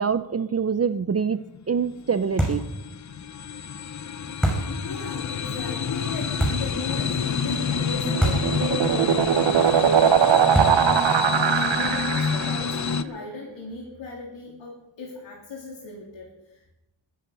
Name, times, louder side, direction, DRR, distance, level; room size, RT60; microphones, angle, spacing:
voice 1, 0.0-1.4 1.7-2.6, right 6 dB, 35° right, 12 dB, 0.6 m, -25 dB
sound 1, 1.4-13.0, left 6 dB, 40° left, 0.7 m, -28 dB
sound 2, 2.4-2.8 4.4-4.8 6.4-6.8 8.2-8.6 8.9-9.0 10.6-10.9, right 1 dB, ahead, 7.2 m, -24 dB
voice 2, 4.8-16.7, left 3 dB, 75° left, -2 dB, 3.1 m, -37 dB
sound 3, 7.8-12.6, right 9 dB, 75° right, 0.8 m, -21 dB
21.0 x 10.5 x 5.4 m, 0.94 s
wide cardioid pair, 100°, 45 cm